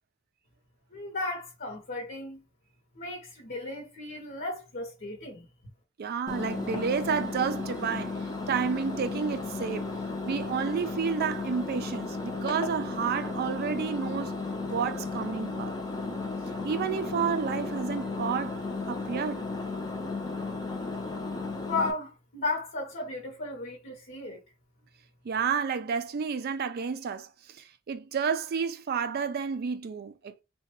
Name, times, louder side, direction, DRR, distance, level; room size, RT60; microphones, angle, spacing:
voice 1, 0.9-2.4 3.0-5.5 21.6-24.4, left 3 dB, 50° left, 0.8 m, -34 dB
voice 2, 6.0-9.9 10.3-14.4 14.7-15.7 16.0-16.2 16.6-18.6 18.9-19.5 25.2-30.4, right 6 dB, 50° right, 0.4 m, -31 dB
Engine, 6.3-21.9, left 3 dB, 20° left, 0.6 m, -34 dB
3.7 x 2.2 x 2.9 m
head